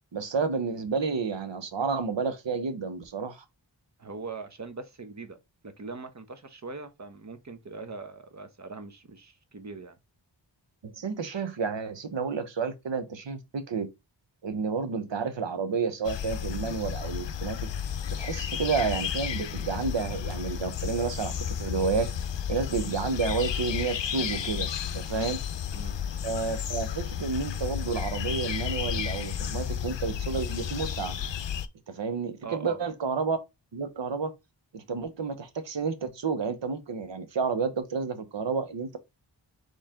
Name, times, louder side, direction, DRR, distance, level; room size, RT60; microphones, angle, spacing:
voice 1, 0.1-3.4 10.8-13.9 14.4-17.7 18.1-21.3 21.6-22.1 22.5-24.7 24.9-25.4 26.2-31.2 31.9-33.4 33.7-34.3 34.7-39.0, right 5 dB, 75° right, 0.9 m, -30 dB
voice 2, 4.0-5.4 5.6-10.0 25.1-25.4 25.7-26.0 32.4-32.9, right 4 dB, 40° right, 0.8 m, -41 dB
sound 1, 16.0-31.7, left 8 dB, 75° left, 0.6 m, -32 dB
4.3 x 3.2 x 3.6 m
wide cardioid pair, 70°, 45 cm